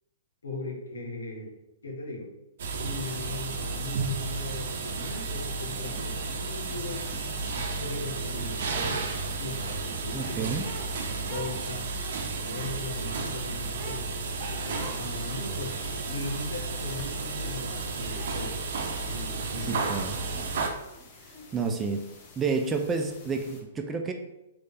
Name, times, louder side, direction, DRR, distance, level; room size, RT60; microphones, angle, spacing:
voice 1, 0.4-1.5 1.8-2.3 2.8-7.1 7.8-9.0 9.4-10.6 11.0-11.9 12.4-15.7 16.1-18.6 19.1-20.0, left 2 dB, 80° left, -1 dB, 1.2 m, -38 dB
sound 1, 2.6-20.7, right 4 dB, 60° right, 0.6 m, -33 dB
sound 2, 5.8-6.0 6.2-10.9 11.2-12.7 13.7-14.1 14.7-15.1 15.5-16.3 17.4-17.7 18.1-19.9 20.3-21.7, right 2 dB, 35° right, 1.0 m, -47 dB
voice 2, 10.1-10.6 19.7-20.2 21.5-22.0 22.4-24.1, right 4 dB, 20° right, 4 dB, 0.5 m, -30 dB
sound 3, 14.2-23.6, left 3 dB, 40° left, 0.9 m, -50 dB
3.3 x 3.3 x 4.1 m, 0.94 s
figure-of-eight pair, 115°, 0 cm